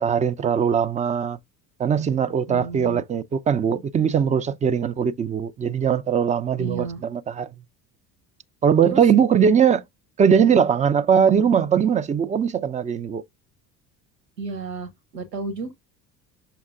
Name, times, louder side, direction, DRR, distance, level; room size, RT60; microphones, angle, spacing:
voice 1, 0.0-1.4 1.8-7.5 8.6-9.8 10.2-13.2, right 7 dB, 15° right, 0.4 m, -20 dB
voice 2, 2.5-3.0 6.6-7.0 8.9-9.0 14.4-15.7, right 4 dB, 85° right, 1.1 m, -32 dB
6.7 x 5.8 x 2.4 m
figure-of-eight pair, 60°, 49 cm